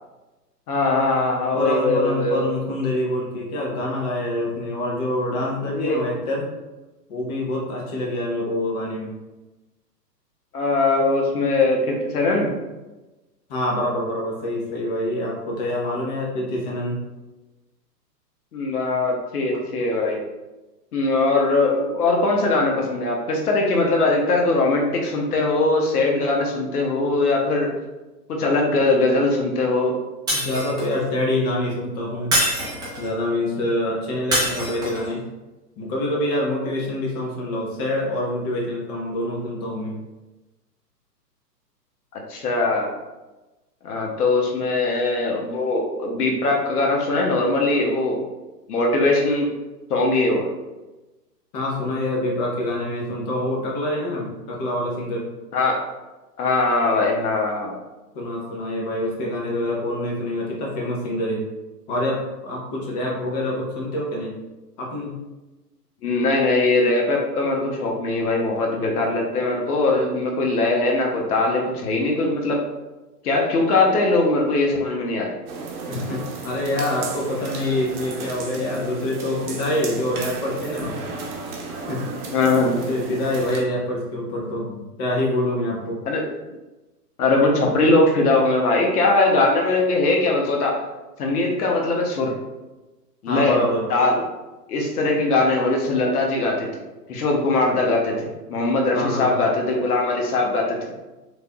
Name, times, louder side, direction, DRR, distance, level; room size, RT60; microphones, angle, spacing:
voice 1, 0.7-2.5 5.7-6.0 10.5-12.5 18.5-20.2 20.9-27.7 28.4-30.0 42.1-42.9 43.8-48.2 48.7-49.5 49.9-50.5 55.5-55.8 56.4-57.8 66.0-72.6 73.2-75.3 82.3-82.7 86.0-86.2 87.2-90.8 91.2-92.3 93.2-93.6 93.9-94.2 94.7-96.7 97.1-98.1 98.5-101.0, left 2 dB, 65° left, 0 dB, 1.0 m, -21 dB
voice 2, 1.5-6.5 7.1-9.1 13.5-17.0 30.3-32.4 33.0-35.2 35.8-40.0 51.5-55.3 58.1-61.4 61.9-64.3 64.8-65.1 75.9-80.9 81.7-82.0 82.7-86.0 93.3-93.8 98.9-99.4, left 1 dB, 25° left, -2 dB, 0.8 m, -26 dB
Shatter, 30.3-31.0 32.3-33.1 34.3-35.1, equal, 10° right, 0.6 m, -24 dB
sound 1, 75.5-83.6, right 3 dB, 60° right, 0.9 m, -34 dB
4.0 x 3.3 x 2.3 m, 1.1 s
hypercardioid pair, 130°, 49 cm